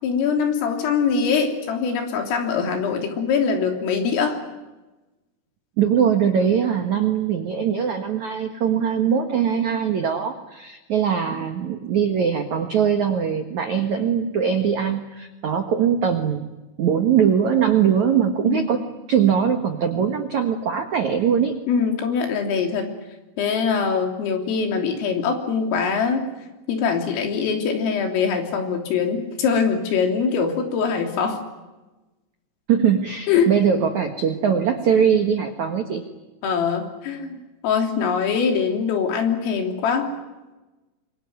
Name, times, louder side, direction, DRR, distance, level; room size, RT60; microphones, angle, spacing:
voice 1, 0.0-4.4 18.4-18.7 21.7-22.9 23.4-26.3 26.7-31.4 33.3-33.5 36.4-40.1, left 6 dB, 80° left, 4 dB, 5.9 m, -23 dB
voice 2, 5.8-16.5 16.8-18.8 19.1-21.6 32.7-36.0, right 7 dB, 70° right, 6 dB, 1.7 m, -21 dB
26.5 x 23.5 x 9.4 m, 1.1 s
omnidirectional pair, 5.9 m